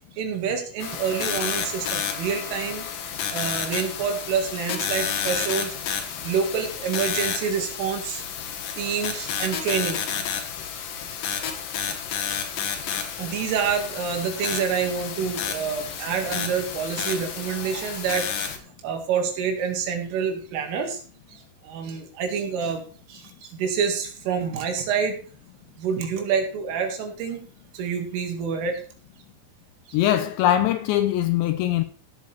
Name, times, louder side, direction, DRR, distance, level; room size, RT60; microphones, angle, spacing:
voice 1, 0.2-2.9 3.3-5.7 6.2-8.3 8.8-10.0 11.1-11.5 12.9-21.0 21.3-22.8 23.1-25.2 25.8-27.4 27.7-28.8 29.9-30.0, right 6 dB, 80° right, 4.5 m, -27 dB
sound 1, 0.8-18.6, left 7 dB, 65° left, 2.2 m, -31 dB
voice 2, 29.9-31.8, left 12 dB, 80° left, 2.7 m, -21 dB
16.5 x 8.3 x 3.4 m
omnidirectional pair, 5.8 m